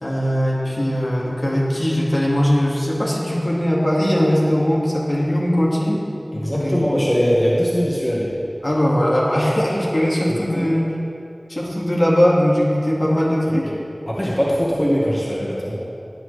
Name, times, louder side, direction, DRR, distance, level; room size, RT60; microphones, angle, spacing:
voice 1, 0.0-6.0 6.3-6.9 8.6-10.9 11.5-13.7, equal, 55° left, -5 dB, 2.0 m, -20 dB
voice 2, 6.3-8.3 10.5-10.7 13.6-13.7 14.1-15.8, equal, 25° left, -6 dB, 1.7 m, -21 dB
17.0 x 9.0 x 3.3 m, 2.6 s
wide cardioid pair, 45°, 0 cm